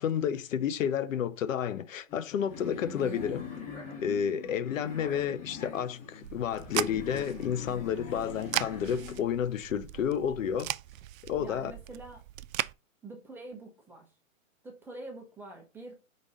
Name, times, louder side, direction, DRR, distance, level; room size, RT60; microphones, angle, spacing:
voice 1, 0.0-3.5 4.0-10.7 11.2-11.7, left 8 dB, 70° left, 0.8 m, -31 dB
sound 1, 2.1-9.2, left 5 dB, 30° left, 2.2 m, -43 dB
sound 2, 6.2-12.7, right 14 dB, 75° right, 0.5 m, -38 dB
voice 2, 11.4-12.2 13.0-14.1 14.6-16.0, right 2 dB, 5° right, 0.6 m, -45 dB
5.2 x 4.1 x 4.9 m
hypercardioid pair, 150°, 40 cm